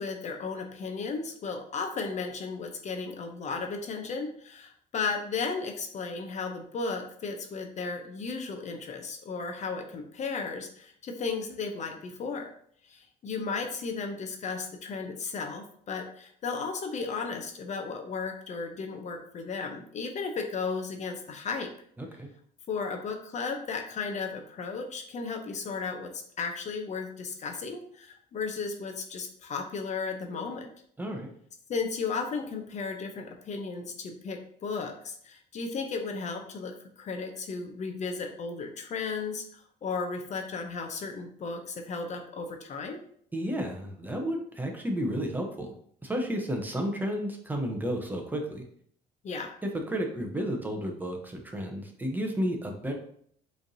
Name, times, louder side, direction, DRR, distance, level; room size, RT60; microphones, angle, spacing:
voice 1, 0.0-12.5 12.8-21.7 22.7-30.7 31.7-43.0 49.2-49.5, left 4 dB, 45° left, 4 dB, 0.6 m, -35 dB
voice 2, 22.0-22.3 31.0-31.3 43.3-45.7 46.0-48.6 49.7-52.9, equal, 10° right, 2 dB, 0.7 m, -32 dB
4.9 x 3.2 x 2.7 m, 0.63 s
cardioid pair, 110°, 17 cm